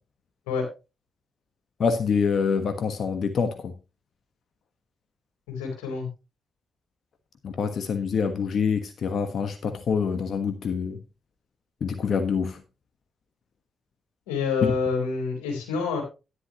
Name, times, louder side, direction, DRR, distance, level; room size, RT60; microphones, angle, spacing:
voice 1, 1.8-3.7 7.4-11.0 11.8-12.6 14.6-14.7, left 6 dB, 65° left, 1.3 m, -26 dB
voice 2, 5.5-6.1 14.3-16.0, left 5 dB, 90° left, 3.8 m, -27 dB
11.5 x 10.5 x 3.0 m
hypercardioid pair, 40°, 0 cm